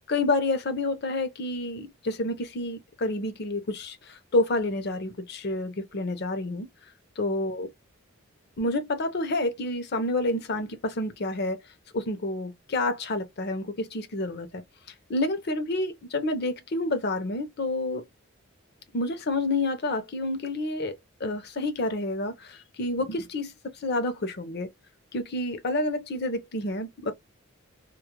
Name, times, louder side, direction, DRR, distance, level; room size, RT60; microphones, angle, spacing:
voice 1, 0.1-6.7 7.2-7.7 8.6-11.6 11.9-14.6 15.1-18.0 18.9-24.7 25.1-27.1, left 2 dB, 50° left, 0.6 m, -29 dB
2.3 x 2.1 x 2.9 m
head